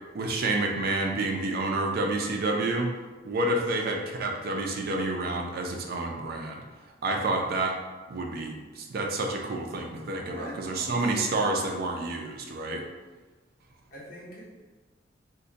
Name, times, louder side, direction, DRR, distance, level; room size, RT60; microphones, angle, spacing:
voice 1, 0.1-2.9 3.2-6.6 7.0-7.8 8.1-12.8, right 2 dB, 55° right, 1 dB, 0.4 m, -29 dB
voice 2, 10.2-11.4 13.9-14.6, equal, 55° left, -5 dB, 0.9 m, -43 dB
2.6 x 2.1 x 3.8 m, 1.2 s
head